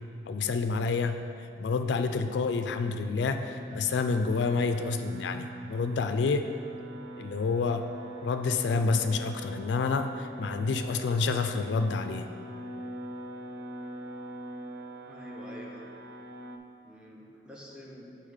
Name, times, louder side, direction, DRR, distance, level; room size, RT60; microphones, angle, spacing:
voice 1, 0.3-1.2 1.6-6.5 7.2-7.9 8.2-12.3, left 4 dB, 80° left, 7 dB, 0.3 m, -28 dB
sound 1, 3.4-16.6, right 1 dB, 65° right, 0.4 m, -43 dB
voice 2, 15.1-15.9 16.8-18.1, equal, 5° right, -3 dB, 0.8 m, -47 dB
7.2 x 4.0 x 5.0 m, 2.5 s
head